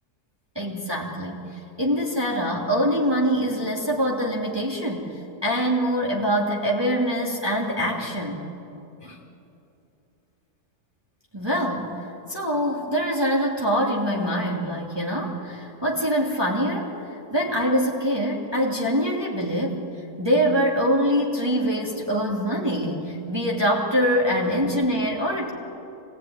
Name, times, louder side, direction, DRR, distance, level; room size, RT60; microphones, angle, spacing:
voice 1, 0.5-1.5 1.8-8.4 9.0-9.2 11.3-16.9 17.3-19.8 20.2-25.5, equal, 15° right, -4 dB, 2.8 m, -24 dB
26.0 x 19.0 x 9.6 m, 2.8 s
omnidirectional pair, 1.7 m